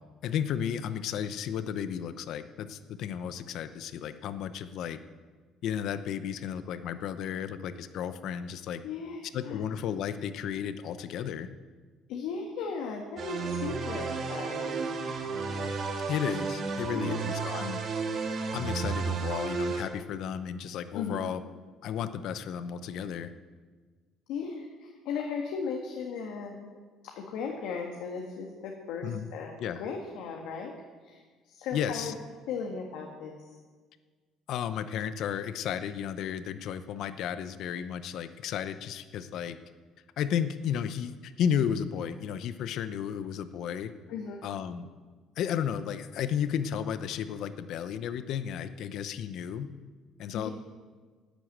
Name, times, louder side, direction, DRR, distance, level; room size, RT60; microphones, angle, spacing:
voice 1, 0.2-5.0 5.6-8.8 9.3-11.5 16.1-17.8 18.5-21.4 21.8-23.3 29.0-29.3 29.6-29.8 31.7-32.1 34.5-39.6 40.2-43.9 44.4-44.9 45.4-49.7 50.2-50.5, left 8 dB, 65° left, 12 dB, 0.8 m, -33 dB
voice 2, 8.8-9.6 12.1-14.9 16.9-17.2 20.9-21.2 24.3-26.8 27.2-30.7 31.0-32.2 32.5-33.5 44.1-44.4 50.3-50.5, left 5 dB, 85° left, 1 dB, 1.7 m, -37 dB
sound 1, 13.2-19.8, right 5 dB, 50° right, 1.9 m, -32 dB
11.5 x 9.3 x 8.1 m, 1.5 s
cardioid pair, 125°, 0 cm